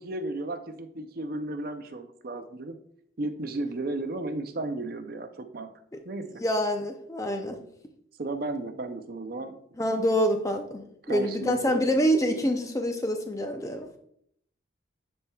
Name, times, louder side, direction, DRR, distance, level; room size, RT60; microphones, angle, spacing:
voice 1, 0.0-2.8 3.2-5.7 6.1-6.3 8.2-9.6 11.0-11.9, right 2 dB, 50° right, 7 dB, 0.5 m, -34 dB
voice 2, 6.4-7.6 9.8-14.0, equal, 15° left, 5 dB, 0.5 m, -26 dB
9.9 x 4.3 x 2.3 m, 0.71 s
head